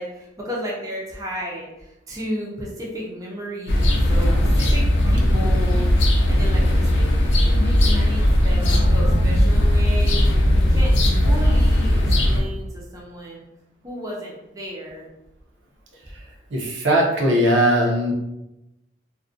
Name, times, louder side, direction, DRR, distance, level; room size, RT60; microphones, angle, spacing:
voice 1, 0.0-7.1 7.4-10.2 10.5-13.4 13.8-15.1, equal, 20° right, -4 dB, 0.4 m, -33 dB
sound 1, 3.7-12.4, left 1 dB, 70° left, 0.5 m, -17 dB
voice 2, 16.5-18.1, equal, 75° right, -1 dB, 0.6 m, -19 dB
2.4 x 2.1 x 2.5 m, 0.92 s
head